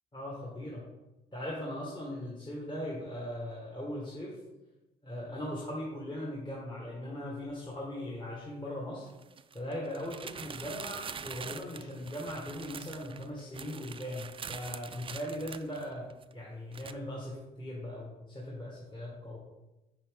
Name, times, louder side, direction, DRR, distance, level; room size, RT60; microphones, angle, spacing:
voice 1, 0.1-0.8 1.3-4.4 5.0-9.1 9.5-19.4, left 1 dB, 25° left, -4 dB, 1.5 m, -39 dB
sound 1, 7.5-7.6 9.1-16.3 16.7-16.9, right 6 dB, 25° right, 0.3 m, -44 dB
5.7 x 5.5 x 3.6 m, 1.0 s
cardioid pair, 90°, 20 cm